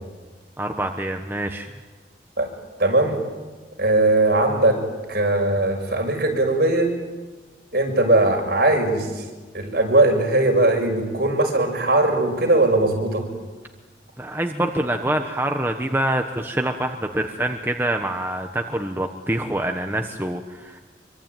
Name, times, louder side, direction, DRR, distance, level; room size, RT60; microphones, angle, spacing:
voice 1, 0.6-1.7 14.2-20.8, right 1 dB, 10° right, 4 dB, 1.2 m, -25 dB
voice 2, 2.8-3.2 3.8-4.8 5.1-6.9 7.7-9.2 9.5-13.2, right 2 dB, 55° right, 3 dB, 6.0 m, -19 dB
25.5 x 24.5 x 9.2 m, 1.3 s
head